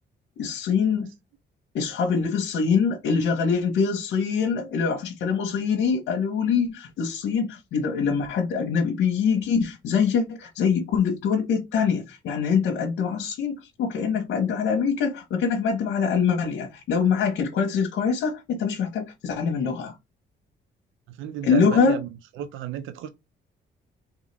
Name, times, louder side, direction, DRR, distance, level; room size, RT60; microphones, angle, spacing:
voice 1, 0.4-1.1 1.7-19.9 21.4-22.0, left 6 dB, 80° left, 1.2 m, -24 dB
voice 2, 21.1-22.1 22.4-23.1, right 10 dB, 85° right, 0.5 m, -33 dB
3.6 x 3.4 x 3.4 m
cardioid pair, 90°, 20 cm